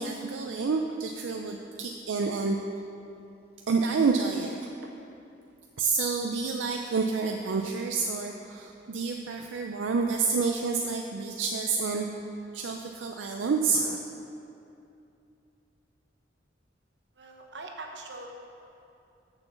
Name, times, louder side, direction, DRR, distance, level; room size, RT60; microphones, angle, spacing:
voice 1, 0.0-2.6 3.7-4.5 5.8-12.1 12.5-14.0, right 4 dB, 85° right, 3 dB, 0.4 m, -28 dB
voice 2, 17.2-18.3, right 3 dB, 65° right, 2 dB, 1.0 m, -42 dB
6.9 x 6.0 x 7.0 m, 2.7 s
head